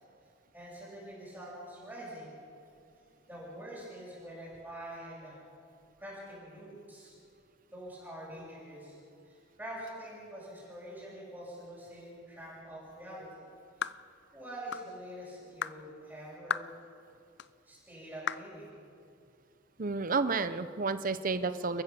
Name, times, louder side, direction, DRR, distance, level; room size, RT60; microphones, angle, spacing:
voice 1, 0.5-2.4 3.3-5.4 6.0-7.1 7.7-9.0 9.2-13.5 14.3-16.7 17.6-18.7, right 1 dB, 10° right, -7 dB, 6.7 m, -45 dB
sound 1, 13.8-14.0 14.7-14.9 15.6-15.8 16.5-16.7 17.4-17.5 18.3-18.5, left 8 dB, 60° left, 0.5 m, -34 dB
voice 2, 19.8-21.8, right 4 dB, 45° right, 11 dB, 0.9 m, -31 dB
29.5 x 15.0 x 7.1 m, 2.5 s
head